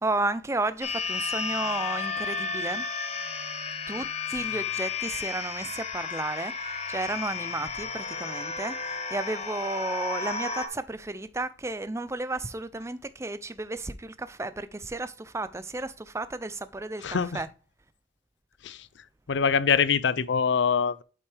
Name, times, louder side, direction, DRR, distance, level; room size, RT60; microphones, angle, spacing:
voice 1, 0.0-2.9 3.9-17.5, right 2 dB, 15° right, 0.4 m, -33 dB
sound 1, 0.8-10.7, left 5 dB, 35° left, 1.0 m, -33 dB
voice 2, 17.0-17.4 18.6-18.9 19.3-21.0, left 6 dB, 70° left, 0.5 m, -24 dB
8.0 x 5.9 x 3.3 m
head